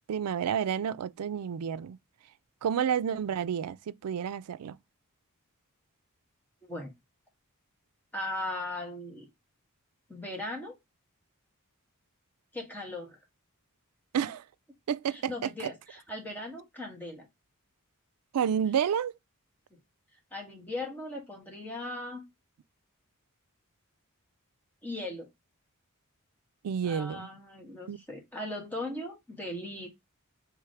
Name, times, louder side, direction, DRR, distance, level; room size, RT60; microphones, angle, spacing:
voice 1, 0.1-2.0 2.6-4.8 14.1-14.4 14.9-15.7 18.3-19.1 26.6-27.3 27.9-28.0, right 8 dB, 85° right, 0.4 m, -30 dB
voice 2, 6.6-6.9 8.1-9.3 10.1-10.8 12.5-13.2 15.1-17.3 19.7-19.8 20.3-22.2 24.8-25.3 26.8-29.9, left 1 dB, 10° left, 1.6 m, -38 dB
4.7 x 3.2 x 3.2 m
head